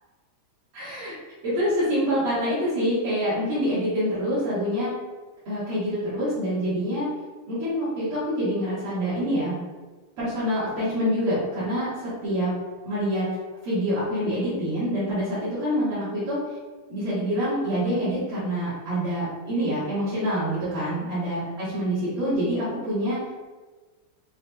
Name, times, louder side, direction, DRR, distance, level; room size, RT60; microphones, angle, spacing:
voice 1, 0.7-1.1 1.4-4.9 5.5-7.1 7.5-9.6 10.2-12.5 12.8-13.3 13.6-16.4 16.9-23.4, equal, 65° right, -12 dB, 2.0 m, -26 dB
5.8 x 2.0 x 2.2 m, 1.3 s
omnidirectional pair, 2.3 m